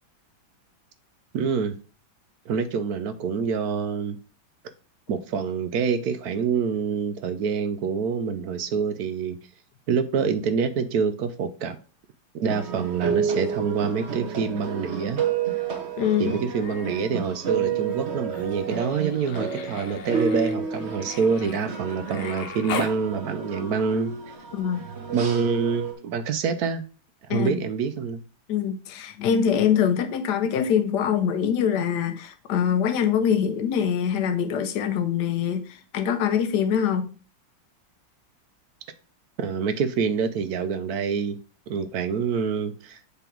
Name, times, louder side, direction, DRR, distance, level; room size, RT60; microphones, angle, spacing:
voice 1, 1.3-1.8 2.5-4.2 5.1-9.4 9.9-11.8 12.3-15.2 16.2-24.1 25.1-26.8 27.3-28.2 39.4-41.4 41.7-43.0, right 6 dB, 65° right, 1.0 m, -26 dB
sound 1, 12.5-25.9, right 6 dB, 40° right, 1.1 m, -30 dB
voice 2, 16.0-16.3 24.5-24.8 27.3-27.6 28.5-35.6 35.9-37.1, left 8 dB, 65° left, 1.3 m, -24 dB
Human voice, 16.3-17.1 17.4-23.0 24.6-24.7, left 6 dB, 85° left, 1.8 m, -39 dB
6.9 x 3.9 x 4.5 m
omnidirectional pair, 2.2 m